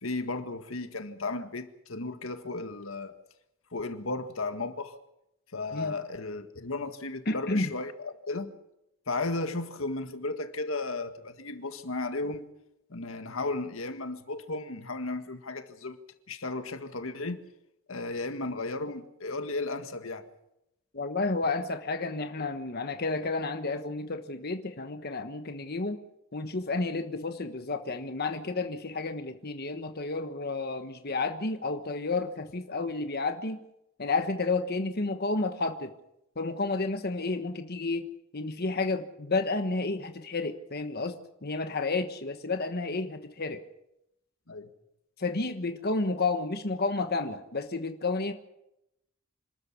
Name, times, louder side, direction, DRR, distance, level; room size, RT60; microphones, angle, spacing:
voice 1, 0.0-3.1 3.7-4.9 5.5-8.5 9.1-12.5 12.9-16.0 16.3-17.4 17.9-20.2 44.5-44.7, left 3 dB, 85° left, 1.8 m, -34 dB
voice 2, 7.3-7.7 20.9-26.0 26.3-33.6 34.0-35.9 36.4-38.1 38.3-43.6 45.2-48.3, left 3 dB, 50° left, 1.3 m, -31 dB
26.5 x 13.5 x 8.4 m
head